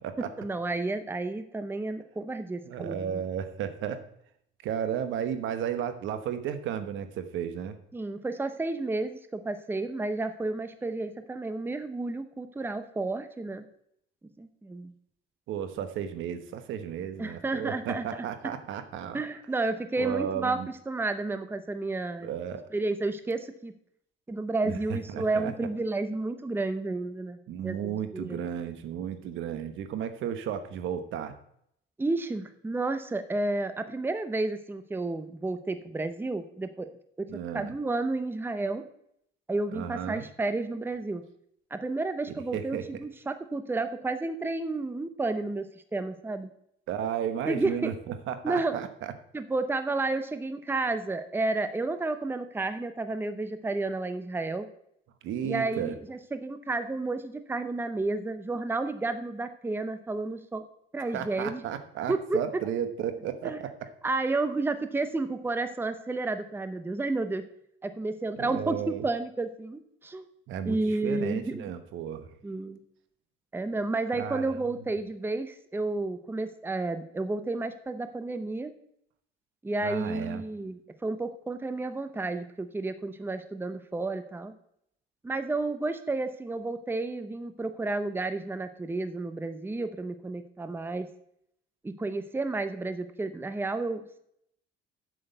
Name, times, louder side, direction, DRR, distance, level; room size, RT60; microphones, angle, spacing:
voice 1, 0.4-3.2 7.9-13.6 14.4-14.9 17.2-18.2 19.1-20.6 20.9-22.3 22.7-23.7 24.3-27.4 27.6-28.4 32.0-36.9 37.2-38.8 39.5-41.2 41.7-45.7 45.9-46.5 47.4-47.9 48.4-48.8 49.3-54.7 55.4-60.6 60.9-61.6 62.1-62.4 63.4-63.6 64.0-67.4 67.8-70.3 70.6-71.7 72.4-72.8 73.5-78.7 79.6-84.5 85.2-91.1 91.8-94.2, right 3 dB, 10° right, 9 dB, 0.7 m, -31 dB
voice 2, 2.6-4.0 4.6-7.8 15.5-19.2 20.0-20.7 22.2-22.7 24.6-24.8 25.1-25.5 27.5-31.3 37.3-37.7 39.7-40.3 42.3-42.8 46.9-49.1 55.2-55.9 61.1-63.7 68.4-69.0 70.5-72.3 74.2-74.6 79.8-80.4, right 9 dB, 75° right, 9 dB, 1.2 m, -34 dB
7.8 x 6.3 x 8.0 m, 0.72 s
cardioid pair, 115°, 20 cm